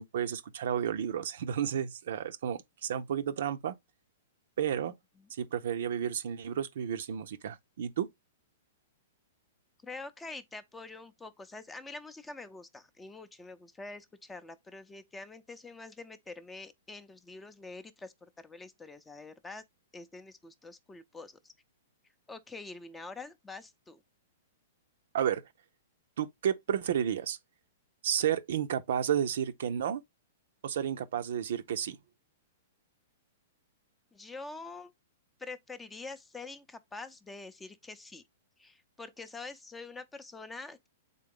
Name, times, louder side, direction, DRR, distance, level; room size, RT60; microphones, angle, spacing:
voice 1, 0.0-3.7 4.6-4.9 5.4-8.1 25.1-25.4 26.2-27.4 28.0-30.0 30.6-32.0, right 9 dB, 70° right, 0.5 m, -32 dB
voice 2, 9.8-19.6 19.9-21.5 22.3-24.0 34.1-34.9 35.4-38.2 38.6-40.9, left 3 dB, 10° left, 0.5 m, -46 dB
3.8 x 3.7 x 3.6 m
hypercardioid pair, 125°, 0 cm